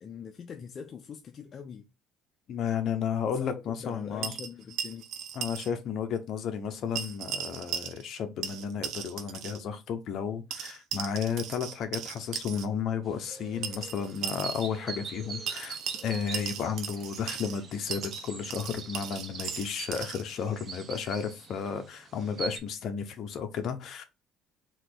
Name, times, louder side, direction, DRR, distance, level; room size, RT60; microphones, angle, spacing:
voice 1, 0.0-1.9 3.3-5.0, left 7 dB, 35° left, 0.6 m, -43 dB
voice 2, 2.5-4.3 5.3-24.0, left 7 dB, 50° left, 1.0 m, -33 dB
sound 1, 4.2-5.7 6.0-6.1 7.0-8.2 8.4-9.6 10.5-12.7 13.6-14.7 15.5-17.6 17.9-20.2, right 8 dB, 70° right, 0.9 m, -37 dB
sound 2, 13.1-22.6, right 5 dB, 35° right, 0.9 m, -43 dB
4.5 x 2.9 x 4.0 m
cardioid pair, 135°, 0 cm